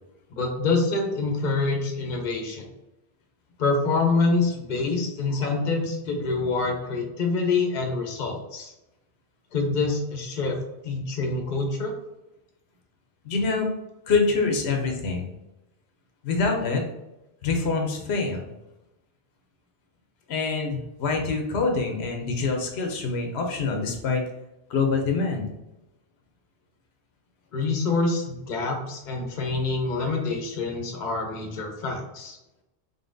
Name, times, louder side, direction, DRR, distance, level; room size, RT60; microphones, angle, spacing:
voice 1, 0.3-2.7 3.6-8.7 9.5-10.6 10.8-11.9 27.5-32.4, left 3 dB, 50° left, 2 dB, 0.8 m, -26 dB
voice 2, 13.2-13.7 14.1-15.3 16.2-16.8 17.4-18.5 20.3-24.2 24.7-25.5, left 4 dB, 80° left, 2 dB, 1.0 m, -25 dB
3.8 x 3.8 x 2.5 m, 0.95 s
omnidirectional pair, 1.1 m